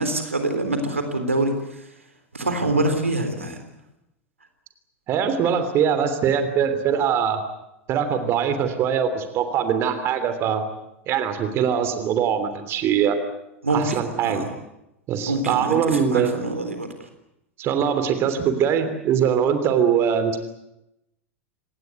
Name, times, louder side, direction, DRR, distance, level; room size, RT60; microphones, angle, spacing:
voice 1, 0.0-1.5 2.3-3.6 13.6-14.5 15.2-16.9, right 2 dB, 80° right, 7 dB, 3.6 m, -25 dB
voice 2, 5.1-7.4 7.9-10.6 11.1-13.2 13.7-14.5 15.1-16.4 17.6-20.4, right 8 dB, 35° right, 9 dB, 3.1 m, -22 dB
27.0 x 19.5 x 8.2 m, 0.86 s
figure-of-eight pair, 85°, 7 cm